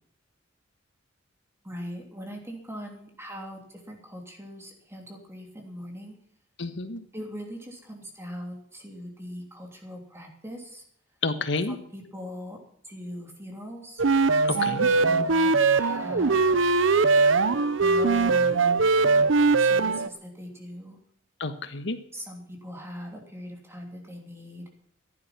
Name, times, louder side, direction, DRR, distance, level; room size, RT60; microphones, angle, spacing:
voice 1, 1.6-3.6 3.9-6.2 7.1-10.8 11.7-12.6 12.8-14.0 14.6-16.4 17.8-18.9 19.6-21.0 22.1-24.6, equal, 15° right, 1 dB, 3.0 m, -40 dB
voice 2, 6.6-7.0 11.2-11.8 14.4-14.9 21.4-22.0, left 3 dB, 70° left, 9 dB, 1.4 m, -29 dB
sound 1, 14.0-20.1, right 4 dB, 85° right, 0.7 m, -21 dB
14.5 x 11.0 x 5.9 m, 0.67 s
head